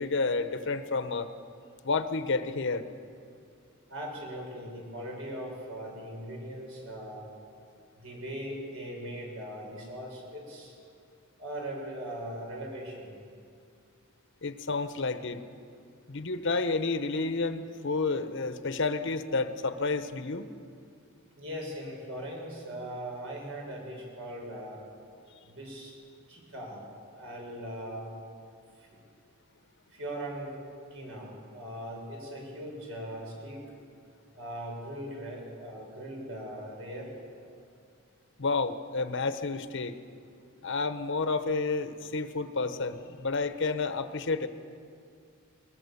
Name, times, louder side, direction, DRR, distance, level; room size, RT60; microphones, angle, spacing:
voice 1, 0.0-1.3 1.8-2.9 14.4-15.4 16.1-20.5 38.4-39.9 40.6-44.5, left 3 dB, 60° left, 10 dB, 1.0 m, -30 dB
voice 2, 3.9-7.2 8.0-10.7 11.4-13.1 21.4-24.8 25.4-25.9 26.3-26.8 27.2-28.1 29.9-30.5 30.9-33.6 34.4-37.1, right 1 dB, 70° right, -1 dB, 6.5 m, -40 dB
21.5 x 21.0 x 7.0 m, 2.3 s
head